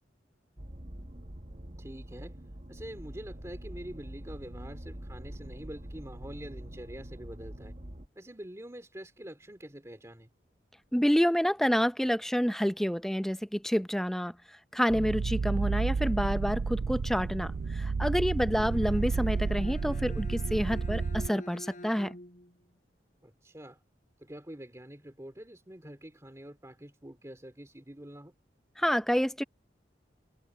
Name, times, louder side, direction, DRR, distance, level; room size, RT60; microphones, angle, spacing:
sound 1, 0.6-8.1, right 1 dB, 40° right, 1.6 m, -44 dB
voice 1, 1.8-2.4 2.7-7.7 8.1-10.3 23.2-23.8 24.2-28.3, right 1 dB, 15° right, 2.4 m, -46 dB
voice 2, 10.9-14.3 14.7-22.2 28.8-29.4, equal, ahead, 0.6 m, -28 dB
sound 2, 14.9-21.3, right 4 dB, 60° right, 0.4 m, -31 dB
Bowed string instrument, 18.3-22.6, left 1 dB, 45° left, 4.8 m, -47 dB
head